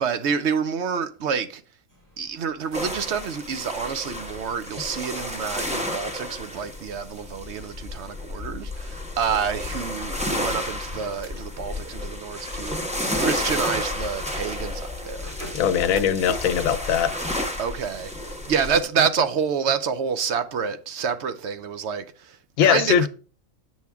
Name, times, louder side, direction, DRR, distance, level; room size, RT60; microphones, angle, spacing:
voice 1, 0.0-1.6 2.2-15.6 15.9-16.1 17.6-23.1, right 6 dB, 65° right, 0.8 m, -28 dB
sound 1, 1.9-16.0, right 1 dB, 40° right, 2.5 m, -48 dB
sound 2, 2.7-18.8, left 1 dB, 5° right, 0.8 m, -31 dB
voice 2, 15.5-17.2 22.6-23.1, left 8 dB, 85° left, 1.0 m, -20 dB
7.9 x 6.3 x 3.5 m
omnidirectional pair, 1.4 m